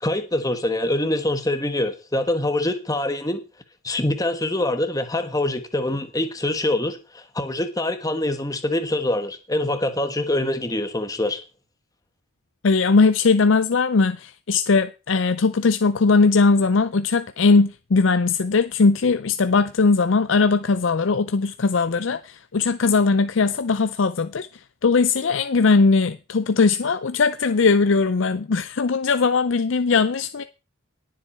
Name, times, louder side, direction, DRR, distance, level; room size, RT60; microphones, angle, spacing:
voice 1, 0.0-3.4 3.8-11.4, left 1 dB, 15° left, 1.3 m, -24 dB
voice 2, 12.6-30.4, left 4 dB, 60° left, 0.5 m, -19 dB
17.5 x 7.6 x 4.4 m
head